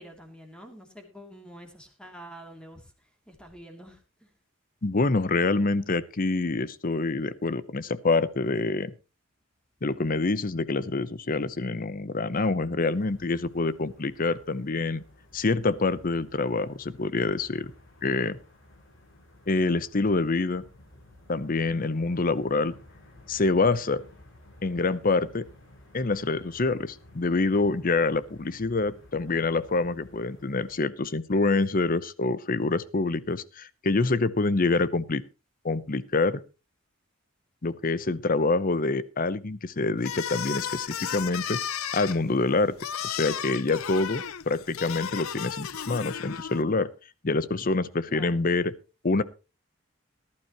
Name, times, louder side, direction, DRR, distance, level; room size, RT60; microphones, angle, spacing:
voice 1, 0.0-2.8 3.3-4.3 48.1-48.4, equal, 5° left, 3 dB, 2.8 m, -47 dB
voice 2, 4.8-8.9 9.8-15.0 15.3-17.7 18.0-18.4 19.5-20.6 21.3-22.7 23.3-24.0 24.6-25.5 25.9-35.2 35.6-36.4 37.6-41.6 41.9-42.7 43.0-46.9 47.2-48.7 49.0-49.2, left 3 dB, 45° left, 17 dB, 0.8 m, -26 dB
sound 1, 12.8-30.8, left 1 dB, 65° left, 7.3 m, -54 dB
sound 2, 40.0-46.6, left 8 dB, 90° left, 0.7 m, -34 dB
18.5 x 12.0 x 3.0 m, 0.30 s
head